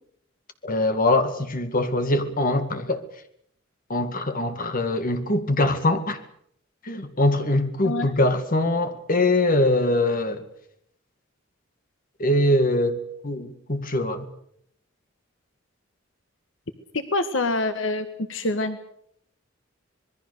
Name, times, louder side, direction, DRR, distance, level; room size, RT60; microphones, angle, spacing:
voice 1, 0.6-3.0 3.9-6.2 6.8-10.4 12.2-14.3, left 1 dB, 45° left, 2.3 m, -23 dB
voice 2, 16.9-18.8, left 2 dB, 70° left, 1.5 m, -26 dB
26.5 x 21.0 x 6.8 m
head